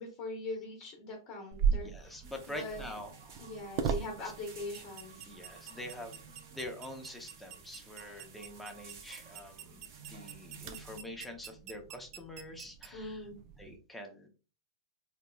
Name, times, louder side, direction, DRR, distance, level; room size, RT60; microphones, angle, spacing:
voice 1, 0.0-2.9 3.4-5.3 12.9-13.4, left 2 dB, 40° left, 1 dB, 0.8 m, -42 dB
sound 1, 1.5-13.8, right 7 dB, 45° right, 0.5 m, -40 dB
voice 2, 1.7-3.5 3.8-4.0 5.3-6.2 6.5-13.2 13.6-14.3, left 1 dB, 5° left, 2 dB, 0.6 m, -46 dB
sound 2, 2.2-11.0, right 5 dB, 65° right, 1.2 m, -54 dB
3.7 x 2.8 x 2.2 m, 0.35 s
hypercardioid pair, 135°, 2 cm